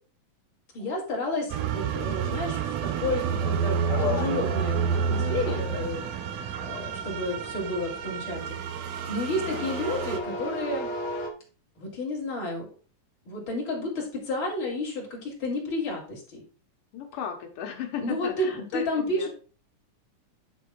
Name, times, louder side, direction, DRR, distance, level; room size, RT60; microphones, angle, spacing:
voice 1, 0.7-6.0 6.6-8.7 9.0-10.9 11.8-12.7 13.3-16.4 18.0-19.3, left 2 dB, 40° left, -2 dB, 3.3 m, -31 dB
sound 1, 1.5-10.2, right 6 dB, 70° right, 1.7 m, -29 dB
sound 2, 3.7-11.3, left 2 dB, 60° left, 1.2 m, -36 dB
sound 3, 3.9-10.6, right 2 dB, ahead, 1.2 m, -46 dB
voice 2, 9.4-9.7 16.9-19.3, left 7 dB, 80° left, 3 dB, 2.8 m, -36 dB
10.0 x 3.4 x 4.7 m, 0.38 s
omnidirectional pair, 3.7 m